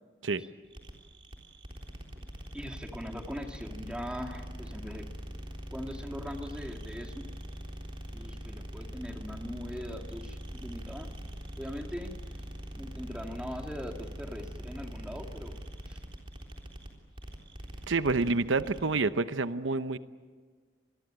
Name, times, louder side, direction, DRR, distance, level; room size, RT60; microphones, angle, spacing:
sound 1, 0.7-18.9, equal, 30° right, 3.7 m, -42 dB
voice 1, 2.5-5.1 5.7-7.2 8.1-11.1 11.6-12.4 12.7-15.6 15.9-16.0, equal, 5° right, 3 dB, 2.2 m, -41 dB
voice 2, 17.9-20.0, right 3 dB, 85° right, 12 dB, 0.9 m, -28 dB
26.0 x 21.0 x 8.9 m, 1.5 s
head